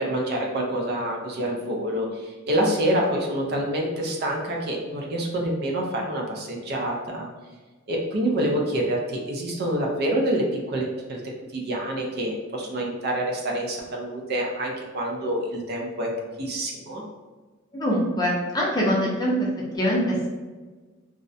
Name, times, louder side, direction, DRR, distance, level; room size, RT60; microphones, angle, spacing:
voice 1, 0.0-7.3 7.9-11.2 11.5-16.1 16.4-17.0, right 1 dB, 50° right, -1 dB, 0.4 m, -27 dB
voice 2, 17.7-19.5 19.7-20.3, equal, 20° left, -4 dB, 0.5 m, -23 dB
2.4 x 2.1 x 2.5 m, 1.3 s
head